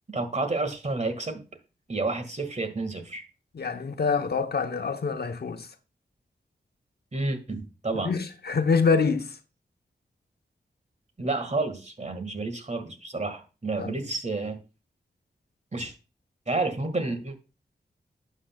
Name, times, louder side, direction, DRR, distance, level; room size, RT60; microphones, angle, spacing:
voice 1, 0.1-1.4 1.9-3.2 7.1-8.1 11.2-14.6 15.7-15.9 16.5-17.4, right 3 dB, 40° right, 1.8 m, -30 dB
voice 2, 3.5-5.7 8.0-9.4 13.8-13.9, left 5 dB, 65° left, 0.9 m, -25 dB
11.5 x 8.1 x 2.3 m
cardioid pair, 55°, 18 cm